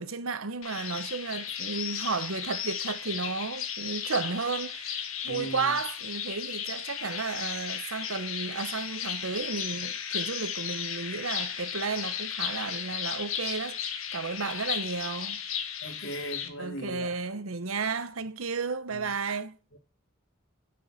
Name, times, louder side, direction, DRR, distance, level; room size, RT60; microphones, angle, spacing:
voice 1, 0.0-13.8 14.1-15.4 16.6-19.6, right 4 dB, 85° right, 1.0 m, -33 dB
sound 1, 0.6-16.5, left 8 dB, 80° left, 1.5 m, -35 dB
voice 2, 5.3-5.8 15.8-17.2 18.9-19.1 19.7-19.8, equal, 60° left, 3.1 m, -39 dB
7.4 x 6.4 x 7.8 m
head